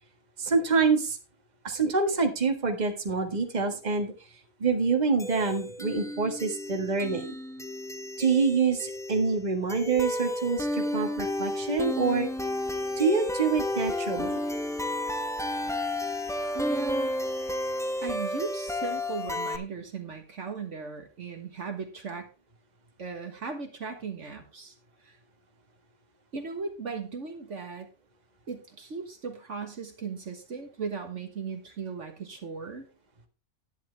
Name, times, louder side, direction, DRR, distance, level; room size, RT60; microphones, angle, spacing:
voice 1, 0.4-1.2 1.6-4.1 4.6-7.3 8.2-12.3 13.0-14.4, right 4 dB, 30° right, 4 dB, 1.7 m, -26 dB
sound 1, 5.2-19.6, left 1 dB, 5° left, 0.8 m, -32 dB
voice 2, 16.5-17.2 18.0-22.3 23.0-24.7 25.0-25.2 26.3-27.9 28.5-32.8, right 4 dB, 60° right, 5 dB, 1.7 m, -36 dB
11.0 x 10.0 x 3.4 m, 0.30 s
omnidirectional pair, 1.4 m